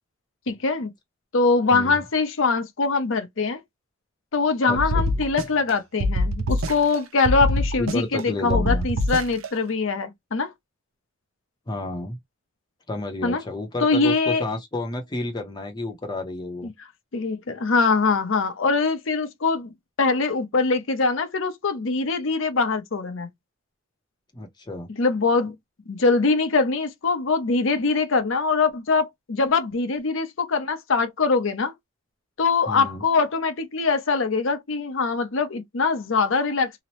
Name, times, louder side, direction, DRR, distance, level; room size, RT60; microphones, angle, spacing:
voice 1, 0.5-0.9 1.3-3.6 4.3-10.5 13.2-13.4 13.8-14.4 17.1-19.7 20.0-23.3 25.0-25.6 25.9-31.7 32.4-36.8, left 4 dB, 70° left, 0.6 m, -23 dB
voice 2, 1.7-2.0 4.7-5.0 7.8-8.9 11.7-12.2 12.9-16.7 24.3-24.9 32.7-33.0, left 2 dB, 20° left, 0.6 m, -31 dB
sound 1, 4.8-5.7 6.0-7.0 7.3-8.2 8.5-9.5, left 1 dB, 80° right, 0.5 m, -24 dB
2.9 x 2.0 x 2.9 m
head